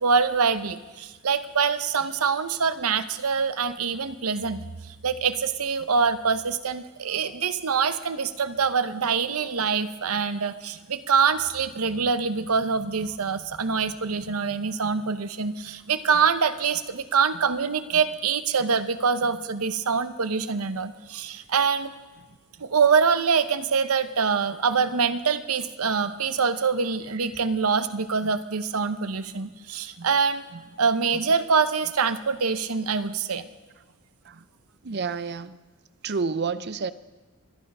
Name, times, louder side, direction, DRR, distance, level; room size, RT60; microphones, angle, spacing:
voice 1, 0.0-21.9 22.6-30.5 30.8-33.4, right 5 dB, 85° right, 12 dB, 0.8 m, -25 dB
voice 2, 34.8-35.6 36.0-36.9, right 5 dB, 50° right, 14 dB, 0.6 m, -32 dB
25.0 x 10.5 x 5.5 m, 1.3 s
head